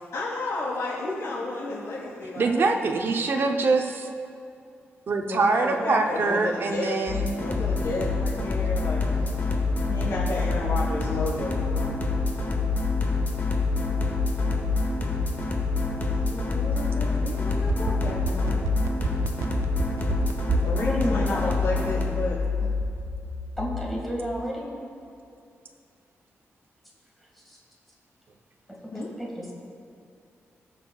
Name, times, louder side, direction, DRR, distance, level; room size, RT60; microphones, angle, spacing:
voice 1, 0.1-2.8 5.3-6.9 7.4-9.5 9.8-12.0 16.2-18.6 20.6-22.7 28.9-29.1, left 2 dB, 90° left, -8 dB, 2.2 m, -32 dB
voice 2, 2.4-4.1 5.1-7.4, right 3 dB, 50° right, 4 dB, 0.7 m, -24 dB
sound 1, 7.1-22.0, left 4 dB, 45° left, 1.3 m, -28 dB
sound 2, 7.8-23.8, left 5 dB, 60° left, 1.4 m, -29 dB
sound 3, 17.4-20.8 21.1-21.2, right 8 dB, 85° right, 0.3 m, -29 dB
voice 3, 20.8-21.5 23.6-24.7 29.4-29.5, equal, 5° left, -4 dB, 1.8 m, -30 dB
18.0 x 6.5 x 2.3 m, 2.5 s
wide cardioid pair, 130°, 5 cm